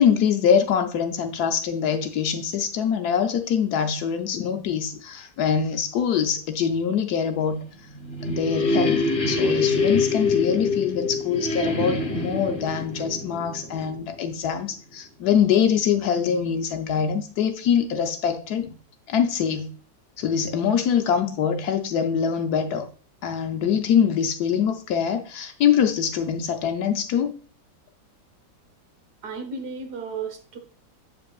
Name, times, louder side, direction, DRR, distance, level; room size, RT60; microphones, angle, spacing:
voice 1, 0.0-7.6 8.3-18.8 19.1-19.7 20.2-22.9 23.2-27.3, left 7 dB, 70° left, 1.1 m, -24 dB
sound 1, 7.7-14.4, left 3 dB, 40° left, 0.8 m, -25 dB
voice 2, 29.2-30.6, right 5 dB, 65° right, 1.6 m, -34 dB
8.2 x 5.1 x 2.3 m
omnidirectional pair, 1.9 m